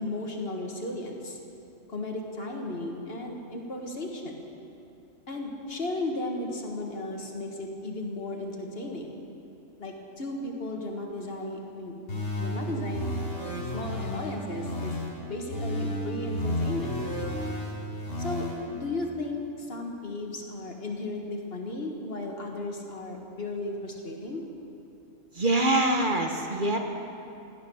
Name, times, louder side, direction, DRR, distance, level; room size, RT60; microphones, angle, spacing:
voice 1, 0.0-1.4 1.9-4.5 5.3-9.1 9.8-11.9 12.4-13.3 13.7-15.0 15.2-17.0 18.2-24.4, left 2 dB, 50° left, 1 dB, 1.8 m, -35 dB
sound 1, 12.1-15.1 15.5-18.5, equal, 85° left, 4.7 m, -32 dB
voice 2, 25.3-26.8, right 2 dB, 45° right, 3 dB, 1.1 m, -24 dB
16.0 x 12.0 x 6.2 m, 2.8 s
omnidirectional pair, 1.3 m